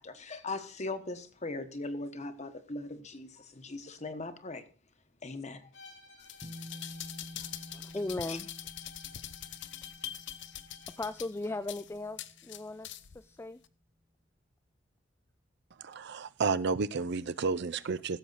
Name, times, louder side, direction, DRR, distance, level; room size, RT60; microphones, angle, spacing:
voice 1, 0.0-4.6 5.2-5.7 8.3-8.4, left 2 dB, 35° left, 9 dB, 1.2 m, -39 dB
Bowed string instrument, 5.7-11.2, left 3 dB, 90° left, 3.2 m, -56 dB
sound 1, 6.2-13.2 13.6-13.7, left 12 dB, 65° left, 0.6 m, -44 dB
sound 2, 6.4-13.0, equal, 15° right, 1.4 m, -51 dB
voice 2, 7.7-8.5 11.0-13.6, left 2 dB, 15° left, 9 dB, 0.4 m, -37 dB
voice 3, 15.8-18.2, right 4 dB, 60° right, 16 dB, 0.5 m, -31 dB
16.0 x 7.1 x 4.0 m, 0.41 s
head